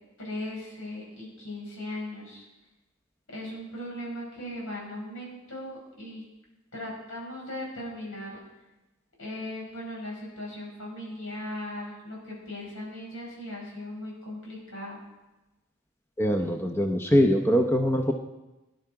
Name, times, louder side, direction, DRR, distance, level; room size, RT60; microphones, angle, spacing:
voice 1, 0.2-2.5 3.3-6.2 6.7-8.4 9.2-15.0, left 1 dB, 75° left, -3 dB, 5.7 m, -38 dB
voice 2, 16.2-18.1, equal, 10° left, 4 dB, 0.7 m, -23 dB
17.0 x 10.5 x 4.7 m, 1.0 s
head